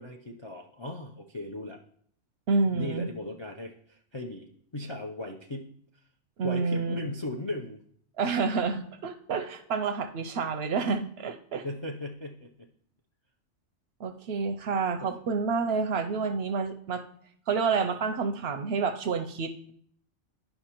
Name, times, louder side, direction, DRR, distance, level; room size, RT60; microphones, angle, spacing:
voice 1, 0.0-1.8 2.7-5.7 6.4-7.8 11.6-12.7 15.0-15.1, left 1 dB, 45° left, 2 dB, 0.3 m, -37 dB
voice 2, 2.5-3.1 6.4-7.1 8.2-11.6 14.0-17.0 17.5-19.7, right 4 dB, 65° right, 8 dB, 0.7 m, -29 dB
11.0 x 5.5 x 2.9 m, 0.63 s
omnidirectional pair, 1.3 m